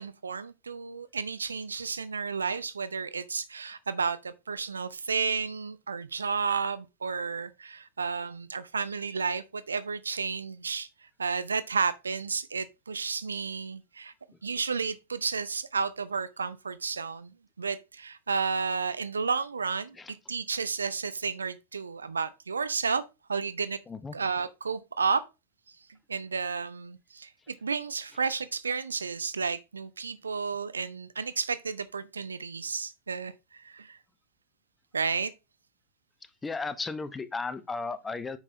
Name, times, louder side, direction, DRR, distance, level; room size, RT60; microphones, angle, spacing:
voice 1, 0.0-14.1 14.4-20.0 20.3-23.0 23.3-23.8 24.1-25.2 25.7-25.8 26.1-34.0 34.9-35.3, right 5 dB, 75° right, 0.5 m, -32 dB
voice 2, 36.4-38.4, left 4 dB, 15° left, 0.7 m, -35 dB
8.8 x 6.1 x 2.7 m
figure-of-eight pair, 90°, 0 cm